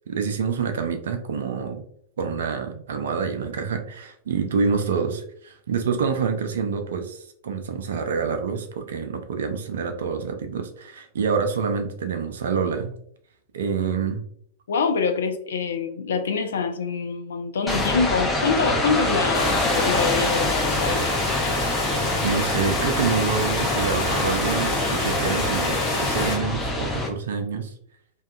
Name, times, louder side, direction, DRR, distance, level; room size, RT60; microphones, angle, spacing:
voice 1, 0.1-1.8 2.2-12.9 13.5-14.2 22.2-27.7, right 5 dB, 60° right, 6 dB, 0.4 m, -27 dB
voice 2, 14.7-21.0, left 5 dB, 65° left, 7 dB, 0.3 m, -25 dB
sound 1, 17.7-27.1, left 1 dB, 10° left, 0.6 m, -26 dB
sound 2, 19.3-26.4, left 2 dB, 35° left, 0.9 m, -26 dB
2.6 x 2.2 x 2.2 m, 0.66 s
figure-of-eight pair, 90°, 0 cm